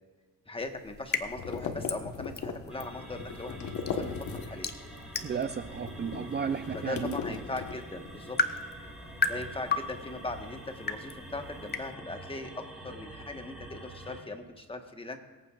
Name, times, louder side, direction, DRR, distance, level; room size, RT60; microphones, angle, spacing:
voice 1, 0.5-4.7 6.7-8.4 9.2-15.2, left 2 dB, 20° left, 5 dB, 1.3 m, -39 dB
sound 1, 0.6-11.9, left 4 dB, 35° left, 0.9 m, -37 dB
sound 2, 0.9-4.8 5.1-8.2, left 6 dB, 75° left, 1.4 m, -39 dB
sound 3, 2.7-14.2, right 1 dB, 5° right, 3.3 m, -46 dB
voice 2, 5.2-7.4, right 6 dB, 35° right, 10 dB, 0.5 m, -34 dB
22.5 x 8.8 x 2.5 m, 1.5 s
cardioid pair, 90°, 30 cm